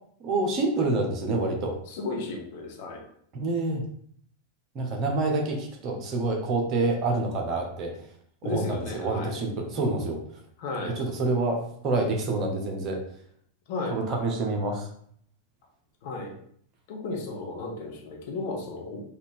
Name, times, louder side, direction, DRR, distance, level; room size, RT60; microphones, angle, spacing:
voice 1, 0.2-1.8 3.3-3.8 4.7-8.1 8.4-10.2 10.8-13.0 13.9-14.9, right 2 dB, 35° right, 2 dB, 0.9 m, -27 dB
voice 2, 1.9-3.0 8.4-9.3 10.6-11.0 13.7-14.0 16.0-16.3 16.9-19.0, left 3 dB, 50° left, 0 dB, 1.0 m, -34 dB
4.1 x 2.5 x 3.6 m, 0.64 s
figure-of-eight pair, 90°, 0 cm